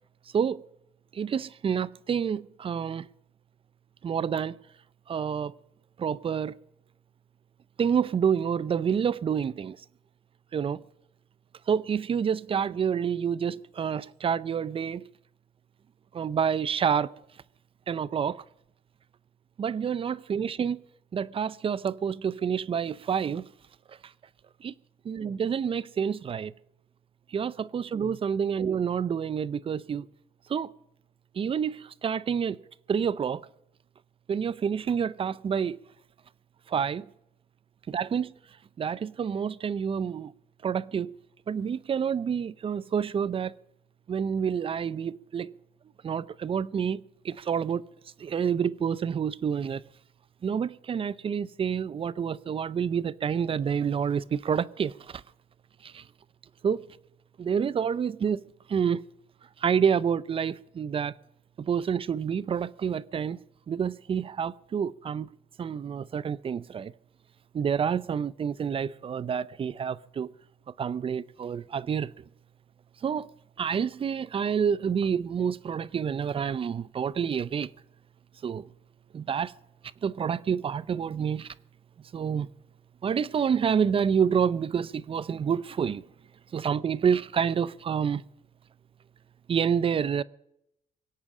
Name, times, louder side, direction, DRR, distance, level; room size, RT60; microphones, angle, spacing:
voice 1, 0.3-0.7 1.1-3.1 4.0-4.6 5.1-5.6 6.0-6.5 7.8-9.8 10.5-10.8 11.7-15.1 16.1-17.1 17.9-18.4 19.6-20.8 21.1-23.5 23.9-24.1 24.6-24.7 25.0-26.5 27.3-30.1 30.5-30.7 31.3-32.6 32.9-33.5 34.3-35.8 36.7-37.1 37.9-38.3 38.8-40.3 40.6-41.2 41.5-43.5 44.1-45.5 46.0-47.9 48.2-49.8 50.4-55.2 55.8-56.1 56.6-56.9 57.4-59.0 59.6-61.1 61.6-63.4 63.7-65.3 65.6-66.9 67.5-70.3 70.8-72.2 73.0-73.3 73.6-77.7 78.4-78.7 79.1-79.5 80.0-81.5 82.1-82.5 83.0-86.1 86.5-88.2 89.5-90.2, right 7 dB, 35° right, 0.6 m, -28 dB
23.0 x 8.6 x 6.2 m
cardioid pair, 110°, 17 cm